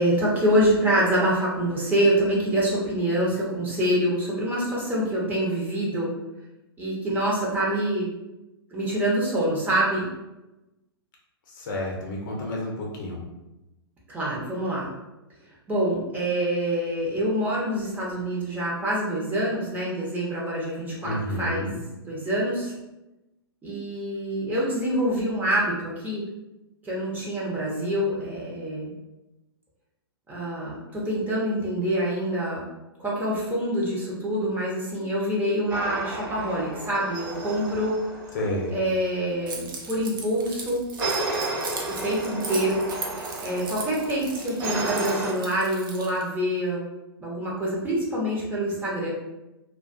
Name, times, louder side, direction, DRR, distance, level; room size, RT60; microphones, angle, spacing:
voice 1, 0.0-6.1 6.8-8.1 8.7-10.1 14.1-14.9 15.7-21.7 22.0-22.7 23.6-26.2 26.8-28.9 30.3-32.6 33.0-38.0 38.7-40.8 42.0-42.8 43.4-46.8 47.2-49.1, right 1 dB, 10° right, -5 dB, 0.6 m, -26 dB
voice 2, 11.5-13.2 21.0-21.7 38.3-38.8, left 1 dB, 50° left, -1 dB, 0.7 m, -30 dB
sound 1, 35.7-38.9 41.0-45.3, right 2 dB, 30° right, 1.0 m, -32 dB
Keys jangling, 39.5-46.2, right 4 dB, 55° right, 0.5 m, -38 dB
2.3 x 2.2 x 2.5 m, 0.99 s
figure-of-eight pair, 110°, 13 cm